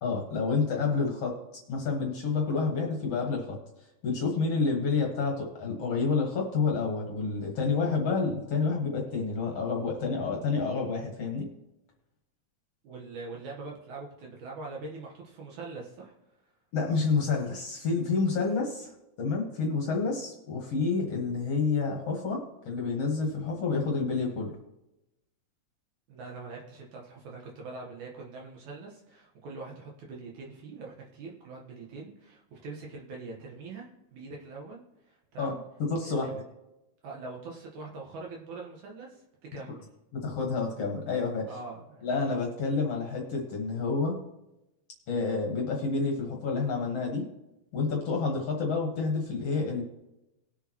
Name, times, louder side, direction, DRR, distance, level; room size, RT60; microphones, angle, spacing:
voice 1, 0.0-1.4 1.7-3.6 4.0-11.5 16.7-24.6 35.4-36.4 40.1-41.5 42.0-44.2 45.1-47.3 47.7-49.8, left 4 dB, 55° left, 1 dB, 2.2 m, -29 dB
voice 2, 12.8-16.1 26.1-35.6 36.0-36.3 37.0-39.9 41.5-42.1, right 3 dB, 70° right, -2 dB, 2.6 m, -43 dB
20.0 x 6.8 x 3.0 m, 0.92 s
omnidirectional pair, 3.6 m